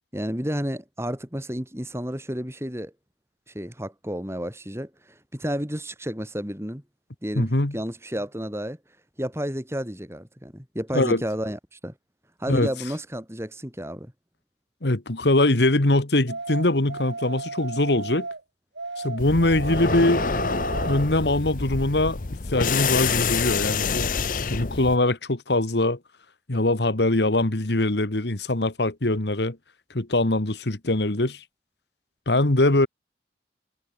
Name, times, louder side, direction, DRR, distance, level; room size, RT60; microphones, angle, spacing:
voice 1, 0.1-2.9 3.5-6.8 7.2-8.8 9.2-11.9 12.4-14.1, equal, 15° right, 6.7 m, -31 dB
voice 2, 7.4-7.8 10.9-11.2 12.5-12.7 14.8-18.3 19.0-20.3 20.9-22.2 22.5-24.1 24.5-26.0 26.5-29.6 29.9-31.4 32.3-32.9, left 2 dB, 70° left, 1.8 m, -22 dB
sound 1, 16.3-18.4 18.8-21.1, right 3 dB, 80° right, 3.6 m, -34 dB
sound 2, 19.2-25.0, left 5 dB, 45° left, 0.8 m, -27 dB
head